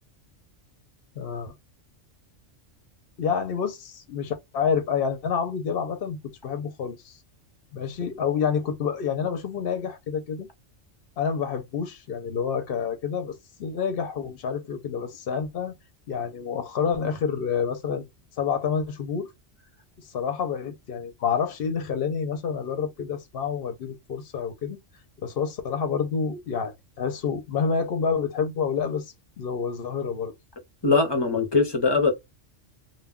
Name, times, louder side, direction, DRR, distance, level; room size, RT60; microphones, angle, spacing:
voice 1, 1.2-1.5 3.2-6.2 6.4-7.2 7.7-10.5 11.2-13.3 13.6-15.7 16.1-18.1 18.4-19.3 20.0-24.8 25.2-30.3, left 6 dB, 60° left, 0.8 m, -28 dB
voice 2, 30.8-32.1, left 4 dB, 30° left, 0.6 m, -21 dB
2.2 x 2.1 x 3.4 m
omnidirectional pair, 1.3 m